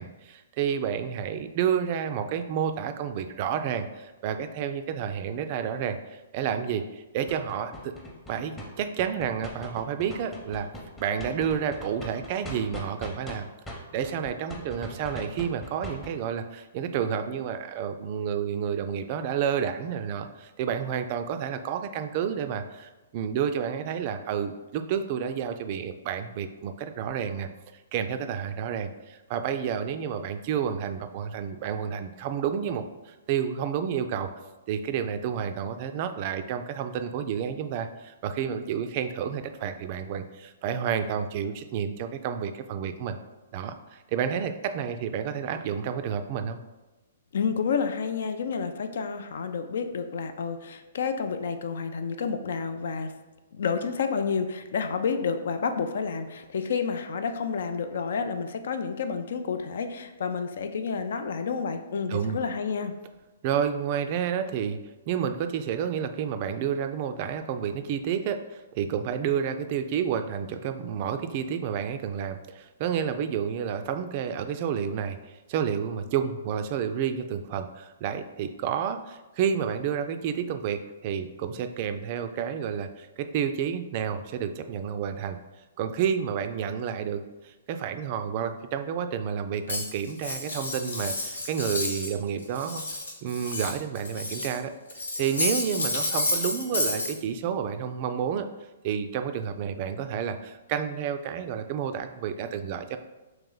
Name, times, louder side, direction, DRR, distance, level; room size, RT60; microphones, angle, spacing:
voice 1, 0.0-7.9 8.3-10.7 11.0-13.5 13.9-27.5 27.9-34.3 34.7-43.2 43.5-46.6 62.1-62.4 63.4-64.8 65.1-85.4 85.8-92.8 93.2-94.7 95.2-98.5 98.8-103.0, right 8 dB, 45° right, 8 dB, 0.3 m, -30 dB
sound 1, 7.3-13.4 13.7-16.1, equal, 10° left, 0.8 m, -40 dB
voice 2, 47.3-53.1 53.5-62.9, left 5 dB, 65° left, 8 dB, 0.4 m, -30 dB
Cutlery silverware, 89.7-92.1 92.4-94.6 94.9-97.1, left 2 dB, 90° left, 0.8 m, -30 dB
3.1 x 3.0 x 3.8 m, 1.1 s
hypercardioid pair, 130°, 0 cm